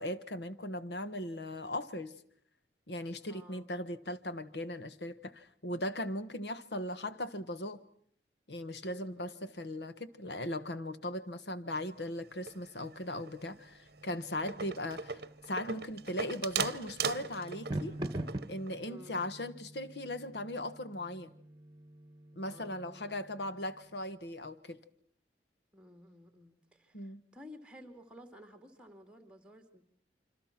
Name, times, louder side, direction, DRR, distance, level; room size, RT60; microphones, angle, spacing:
voice 1, 0.0-2.1 2.9-7.8 8.5-15.2 15.5-18.0 18.5-21.3 22.3-24.8 26.9-27.2, left 1 dB, 70° left, 1.4 m, -38 dB
voice 2, 3.3-3.7 8.8-9.6 18.8-19.2 22.4-23.1 25.7-29.8, left 1 dB, 5° right, 2.4 m, -54 dB
sound 1, 12.2-13.0 13.2-13.5 14.0-14.1 14.3-18.7, right 6 dB, 60° right, 0.9 m, -38 dB
sound 2, 13.3-24.0, right 1 dB, 25° right, 1.5 m, -46 dB
27.0 x 26.0 x 6.0 m
head